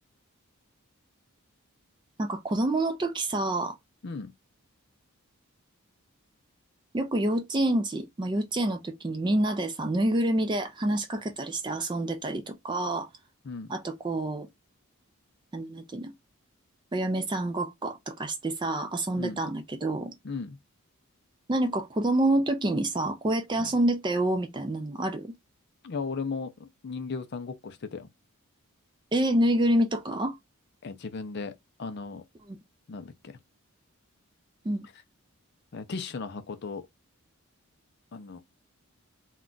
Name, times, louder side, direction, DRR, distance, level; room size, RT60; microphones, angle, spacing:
voice 1, 2.2-3.8 6.9-13.1 13.7-14.5 15.5-16.1 16.9-20.1 21.5-25.3 29.1-30.4 32.5-32.6 34.6-34.9, right 1 dB, 20° right, 0.4 m, -27 dB
voice 2, 20.2-20.6 23.6-23.7 25.8-28.1 30.8-31.5 31.8-32.2 32.9-33.1 35.7-36.8 38.1-38.4, left 4 dB, 50° left, 0.4 m, -36 dB
2.4 x 2.2 x 3.7 m
head